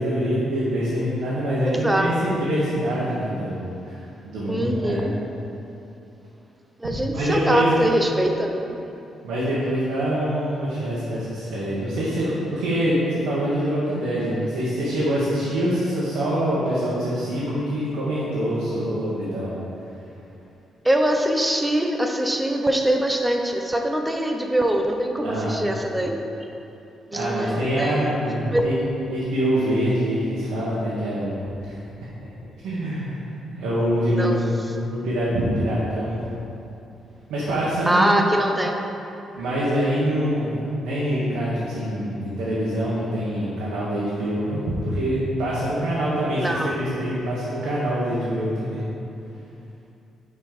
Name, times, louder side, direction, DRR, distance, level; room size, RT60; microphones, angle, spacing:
voice 1, 0.0-5.1 7.1-7.8 9.2-19.5 25.2-25.6 27.1-28.7 29.1-31.7 32.6-33.2 33.5-34.5 34.9-36.2 37.3-38.2 39.3-48.9, equal, 85° right, -9 dB, 1.2 m, -25 dB
voice 2, 1.7-2.3 4.5-5.2 6.8-8.8 20.8-26.2 27.1-28.2 28.5-28.7 34.1-34.4 37.9-38.9 39.6-40.0 46.4-46.7, right 1 dB, 10° right, 3 dB, 0.5 m, -23 dB
5.9 x 4.0 x 5.0 m, 2.8 s
cardioid pair, 80°, 0 cm